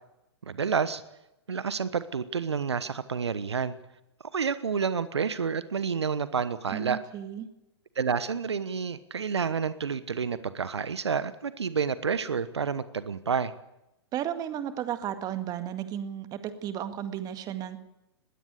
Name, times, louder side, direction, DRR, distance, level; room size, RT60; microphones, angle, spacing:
voice 1, 0.5-1.0 1.5-3.7 4.3-7.0 8.0-13.5, right 6 dB, 75° right, 14 dB, 1.2 m, -29 dB
voice 2, 6.7-7.5 14.1-17.8, right 10 dB, 25° right, 10 dB, 2.0 m, -34 dB
21.0 x 16.5 x 8.2 m, 0.91 s
figure-of-eight pair, 110°, 14 cm